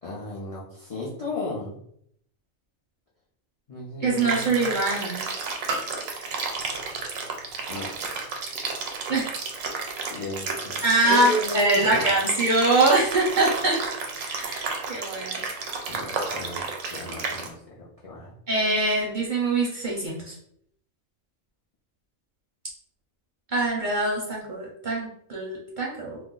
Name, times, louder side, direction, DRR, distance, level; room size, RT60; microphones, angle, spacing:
voice 1, 0.0-1.8 3.7-4.7 7.7-7.9 10.1-10.8 11.1-12.1 15.9-16.6 16.9-18.3, left 1 dB, 55° left, -6 dB, 0.4 m, -33 dB
voice 2, 4.0-5.2 9.1-9.3 10.8-13.8 14.2-15.4 18.5-20.3 23.5-26.2, right 2 dB, 50° right, -3 dB, 0.6 m, -23 dB
sound 1, 4.2-17.5, right 4 dB, 85° right, 1.0 m, -32 dB
2.4 x 2.0 x 3.7 m, 0.69 s
omnidirectional pair, 1.4 m